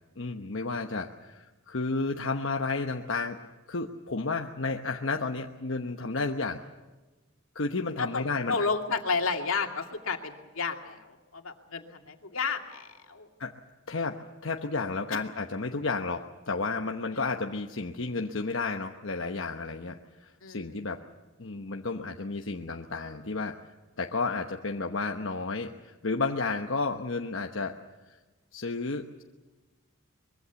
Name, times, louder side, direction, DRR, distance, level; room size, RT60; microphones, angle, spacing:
voice 1, 0.2-3.4 3.7-6.6 7.5-8.6 13.4-13.6 13.9-21.0 21.4-23.6 24.0-27.8 28.5-29.2, left 3 dB, 65° left, 3 dB, 1.1 m, -32 dB
voice 2, 8.5-13.3 15.1-15.2 20.4-20.7, left 4 dB, 85° left, 3 dB, 2.4 m, -31 dB
24.0 x 22.5 x 7.1 m, 1.2 s
head